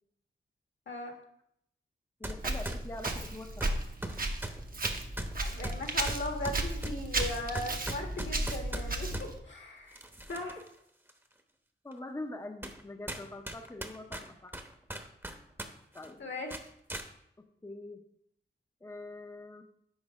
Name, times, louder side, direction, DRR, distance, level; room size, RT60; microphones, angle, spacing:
voice 1, 0.9-1.2 5.4-10.0 10.3-10.6 16.2-16.5, left 2 dB, 65° left, 3 dB, 1.5 m, -38 dB
voice 2, 2.2-3.7 11.8-14.5 15.9-16.3 17.4-18.0 18.8-19.6, left 2 dB, 15° left, 4 dB, 0.7 m, -44 dB
sound 1, 2.2-2.4 2.7-9.3 9.9-10.7 11.1-11.2 11.9-12.0 12.6-12.8 13.1-15.7 16.0-16.1 16.5-17.1, right 1 dB, 10° right, 0.9 m, -39 dB
Walk footsteps, 2.4-9.4, right 2 dB, 45° right, 0.9 m, -35 dB
6.4 x 4.8 x 4.8 m, 0.72 s
cardioid pair, 45°, 20 cm